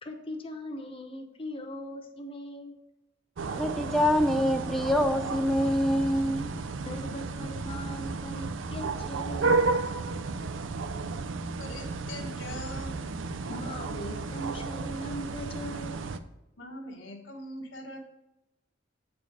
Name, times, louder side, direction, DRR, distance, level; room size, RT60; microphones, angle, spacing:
voice 1, 0.0-2.8 6.8-9.6 13.5-16.1, equal, 30° left, 3 dB, 0.9 m, -39 dB
sound 1, 3.4-16.2, right 3 dB, 85° right, 0.5 m, -33 dB
voice 2, 3.6-6.5, equal, ahead, 5 dB, 0.3 m, -25 dB
voice 3, 11.4-12.9 16.6-18.0, left 1 dB, 80° left, 2 dB, 1.3 m, -42 dB
8.3 x 4.3 x 4.7 m, 0.91 s
head